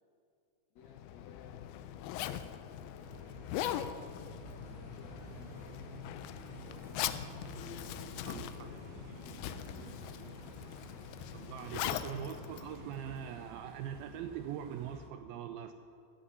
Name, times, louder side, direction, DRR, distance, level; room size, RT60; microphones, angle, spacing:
voice 1, 0.7-1.7 2.1-3.8 4.7-6.0 6.5-7.5 8.2-10.6, left 5 dB, 65° left, -1 dB, 1.8 m, -59 dB
Zipper (clothing), 0.8-13.5, left 11 dB, 80° left, 2.3 m, -41 dB
sound 1, 3.0-15.1, right 3 dB, 70° right, 1.9 m, -52 dB
voice 2, 11.3-15.7, right 9 dB, 85° right, 8 dB, 2.1 m, -42 dB
14.5 x 8.2 x 9.6 m, 2.5 s
omnidirectional pair, 4.8 m